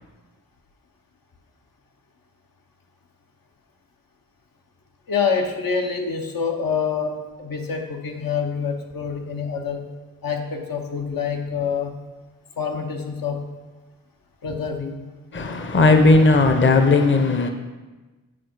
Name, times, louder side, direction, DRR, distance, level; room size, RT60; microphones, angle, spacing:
voice 1, 5.1-9.9 10.2-12.0 12.6-13.4 14.4-15.0, left 6 dB, 80° left, 1.0 m, -26 dB
voice 2, 15.3-17.5, left 3 dB, 35° left, 0.7 m, -16 dB
8.8 x 4.6 x 4.6 m
wide cardioid pair, 80°, 34 cm